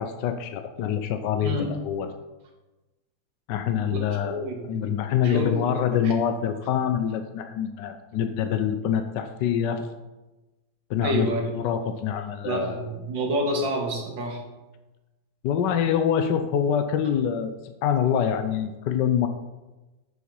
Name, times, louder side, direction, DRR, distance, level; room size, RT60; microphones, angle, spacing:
voice 1, 0.0-2.1 3.5-9.9 10.9-12.9 15.4-19.3, left 8 dB, 75° left, 8 dB, 1.2 m, -25 dB
voice 2, 1.4-1.8 3.9-5.0 5.2-6.1 11.0-11.4 12.4-14.4, right 1 dB, 75° right, 2 dB, 2.2 m, -29 dB
8.1 x 7.5 x 5.4 m, 1.1 s
omnidirectional pair, 2.1 m